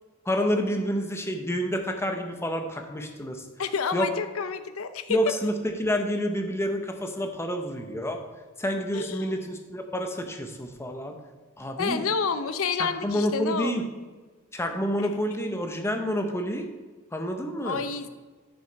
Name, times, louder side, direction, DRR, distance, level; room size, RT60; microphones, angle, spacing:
voice 1, 0.3-3.4 3.9-4.1 5.1-8.2 8.6-11.2 11.6-12.1 12.8-13.8 14.5-16.7 17.1-17.8, equal, 15° left, 4 dB, 0.9 m, -28 dB
voice 2, 3.6-5.2 8.9-9.3 11.8-13.9 15.0-15.1 17.6-18.1, left 5 dB, 85° left, 11 dB, 0.6 m, -29 dB
9.9 x 6.1 x 4.6 m, 1.3 s
head